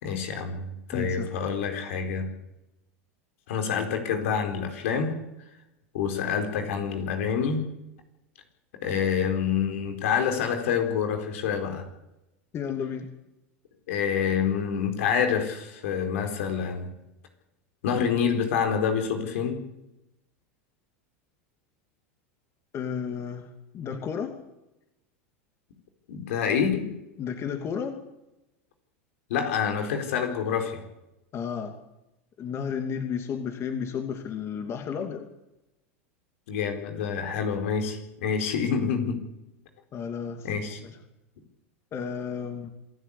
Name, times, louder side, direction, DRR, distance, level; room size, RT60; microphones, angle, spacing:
voice 1, 0.0-2.3 3.5-5.2 5.9-7.7 8.8-11.9 13.9-16.9 17.8-19.6 26.1-27.0 29.3-30.8 36.5-39.2 40.4-40.8, left 7 dB, 75° left, 5 dB, 4.4 m, -27 dB
voice 2, 0.9-1.3 12.5-13.1 22.7-23.5 23.7-24.3 27.2-28.0 31.3-31.7 32.4-35.3 39.9-40.5 40.8-40.9 41.9-42.7, left 7 dB, 35° left, 5 dB, 2.6 m, -32 dB
27.0 x 13.0 x 8.5 m, 0.94 s
hypercardioid pair, 100°, 7 cm